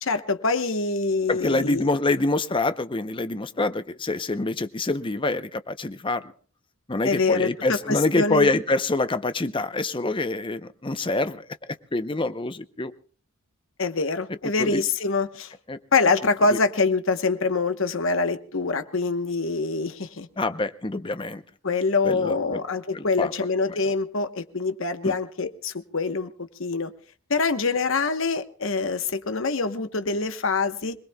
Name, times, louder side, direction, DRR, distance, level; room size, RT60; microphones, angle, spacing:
voice 1, 0.0-1.9 7.0-8.5 13.8-15.5 15.9-20.3 21.6-26.3 26.6-26.9 27.3-31.0, left 4 dB, 65° left, 9 dB, 1.0 m, -25 dB
voice 2, 1.3-6.2 6.9-12.9 14.6-14.8 15.7-15.8 16.5-16.6 20.4-21.4 22.0-22.6 22.9-23.3 25.0-25.1, left 2 dB, 25° left, 11 dB, 0.7 m, -26 dB
25.5 x 20.0 x 2.3 m, 0.44 s
head